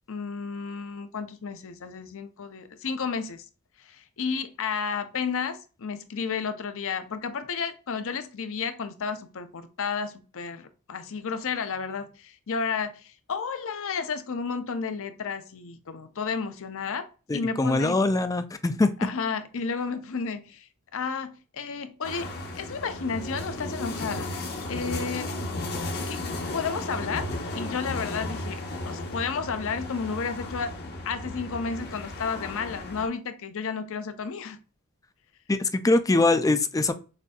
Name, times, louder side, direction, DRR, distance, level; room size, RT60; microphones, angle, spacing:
voice 1, 0.1-3.4 3.8-18.0 19.0-20.7 20.9-22.3 22.5-24.3 24.7-25.3 26.0-30.8 31.0-34.6, left 5 dB, 65° left, 0.6 m, -32 dB
voice 2, 17.3-18.9 35.5-36.9, left 2 dB, 15° left, 0.4 m, -23 dB
sound 1, 22.0-33.1, left 2 dB, 50° left, 0.9 m, -34 dB
6.5 x 2.6 x 2.3 m
head